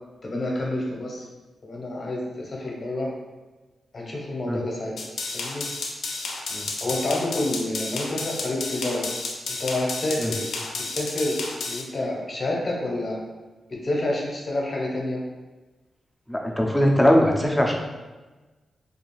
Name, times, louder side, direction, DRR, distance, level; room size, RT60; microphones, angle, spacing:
voice 1, 0.2-1.2 1.6-3.1 3.9-5.0 5.3-5.7 6.8-9.1 9.6-10.5 10.9-13.2 13.7-15.2, left 1 dB, 40° left, -1 dB, 0.7 m, -28 dB
sound 1, 5.0-11.8, left 3 dB, 80° left, 0.4 m, -32 dB
voice 2, 16.3-17.8, equal, 5° left, 0 dB, 0.4 m, -20 dB
2.4 x 2.3 x 3.0 m, 1.2 s
cardioid pair, 95°, 0 cm